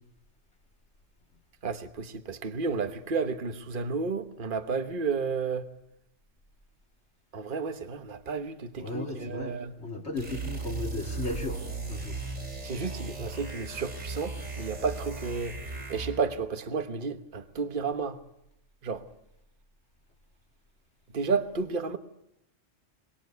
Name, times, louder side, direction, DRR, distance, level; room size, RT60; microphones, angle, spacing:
voice 1, 1.6-5.7 7.3-9.7 12.6-15.5 15.9-18.2 18.8-19.0 21.1-22.0, right 4 dB, 45° right, 1.3 m, -32 dB
voice 2, 8.8-11.6 11.9-12.1, left 2 dB, 60° left, 3.5 m, -35 dB
sound 1, 10.2-16.3, right 3 dB, 90° right, 4.5 m, -37 dB
23.5 x 21.0 x 8.1 m
omnidirectional pair, 1.3 m